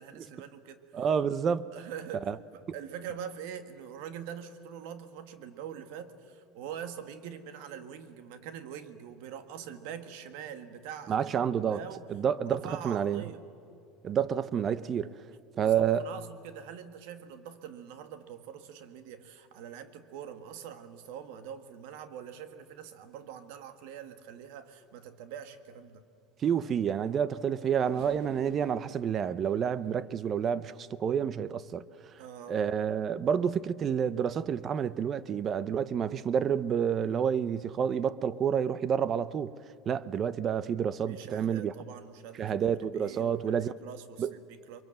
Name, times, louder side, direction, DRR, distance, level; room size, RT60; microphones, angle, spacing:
voice 1, 0.0-1.1 1.7-12.1 12.4-13.4 15.5-26.1 32.2-32.6 41.1-42.5 42.8-44.8, right 8 dB, 75° right, 1.6 m, -44 dB
voice 2, 0.9-1.7 2.3-2.4 11.1-11.8 12.1-13.2 14.0-15.1 15.6-16.1 26.4-32.1 32.5-39.5 39.9-41.7 42.4-43.7 44.2-44.3, right 8 dB, 30° right, 0.6 m, -29 dB
Race car auto racing / Accelerating revving vroom, 27.1-31.4 32.0-32.1 33.3-33.5, equal, 55° right, 6.8 m, -55 dB
23.0 x 23.0 x 7.7 m
supercardioid pair, 140°, 0 cm